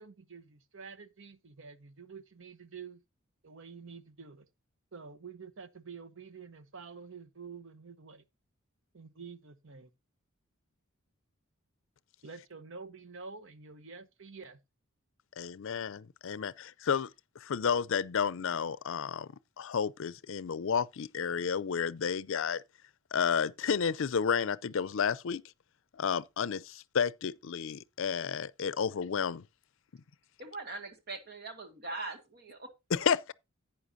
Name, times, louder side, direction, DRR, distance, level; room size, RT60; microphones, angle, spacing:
voice 1, 0.0-3.0 3.4-4.5 4.9-8.2 8.9-9.9 12.2-14.6, right 5 dB, 65° right, 1.0 m, -48 dB
voice 2, 15.4-17.1 17.4-19.3 19.6-22.6 23.1-25.4 26.0-29.4 32.9-33.3, left 6 dB, 65° left, 0.5 m, -31 dB
voice 3, 30.4-32.7, right 3 dB, 50° right, 2.0 m, -41 dB
11.5 x 8.8 x 2.6 m
head